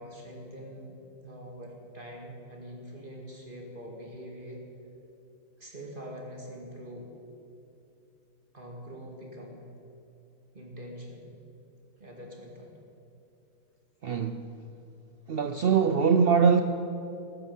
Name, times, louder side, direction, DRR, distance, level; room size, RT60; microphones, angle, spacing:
voice 1, 0.0-4.6 5.6-7.1 8.5-9.6 10.5-11.2 12.0-12.7, equal, 30° right, -1 dB, 2.3 m, -44 dB
voice 2, 14.0-14.5 15.3-16.6, right 6 dB, 75° right, 8 dB, 0.5 m, -22 dB
14.0 x 12.0 x 7.2 m, 2.8 s
omnidirectional pair, 1.7 m